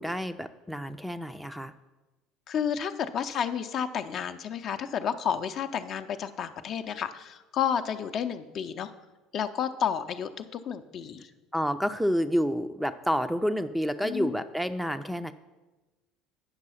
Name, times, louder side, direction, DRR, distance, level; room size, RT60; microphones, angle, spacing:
voice 1, 0.0-1.7 11.5-15.3, equal, ahead, 10 dB, 0.5 m, -29 dB
voice 2, 2.5-8.9 9.3-11.3 14.0-14.4, left 8 dB, 45° left, 8 dB, 0.5 m, -31 dB
8.8 x 6.0 x 5.7 m, 1.1 s
figure-of-eight pair, 65°, 0 cm